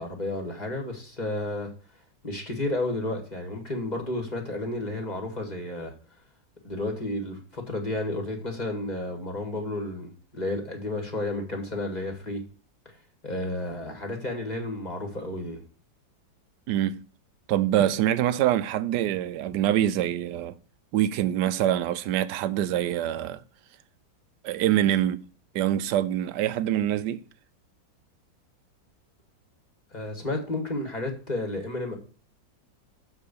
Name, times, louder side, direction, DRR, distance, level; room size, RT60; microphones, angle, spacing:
voice 1, 0.0-1.7 2.2-5.9 6.6-12.4 12.9-13.0 13.2-15.6 29.9-32.0, left 2 dB, 25° left, 1.8 m, -32 dB
voice 2, 16.7-17.0 17.5-20.6 20.9-23.4 24.4-25.2 25.5-27.2, right 12 dB, 70° right, 1.1 m, -25 dB
7.4 x 4.7 x 6.7 m
omnidirectional pair, 2.1 m